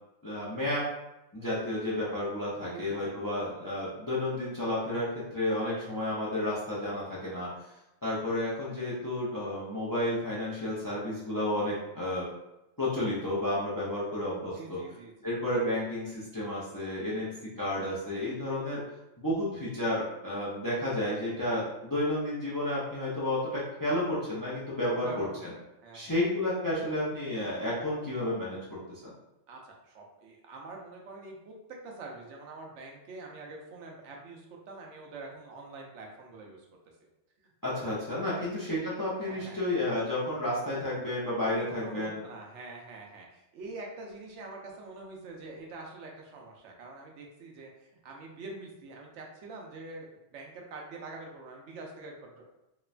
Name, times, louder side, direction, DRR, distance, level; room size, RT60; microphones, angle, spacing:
voice 1, 0.2-0.9 1.3-7.5 8.0-12.3 12.8-14.8 15.2-18.8 19.2-25.2 25.9-28.6 29.0-29.1 37.6-42.3, left 1 dB, 35° left, -7 dB, 0.3 m, -31 dB
voice 2, 2.6-3.3 14.5-15.3 24.9-26.2 29.5-36.7 37.0-37.1 37.4-37.8 38.3-38.4 39.2-39.6 41.4-52.5, right 3 dB, 85° right, 0 dB, 0.9 m, -45 dB
3.0 x 2.1 x 2.4 m, 0.92 s
omnidirectional pair, 1.2 m